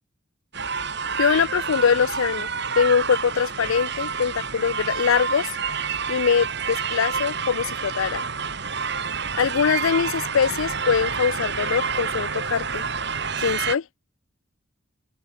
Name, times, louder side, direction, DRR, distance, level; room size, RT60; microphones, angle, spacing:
sound 1, 0.5-13.8, right 6 dB, 50° right, 3.0 m, -28 dB
voice 1, 1.2-2.5 2.8-5.5 6.1-8.2 9.4-12.8 13.4-13.8, left 6 dB, 70° left, 0.4 m, -22 dB
open air
head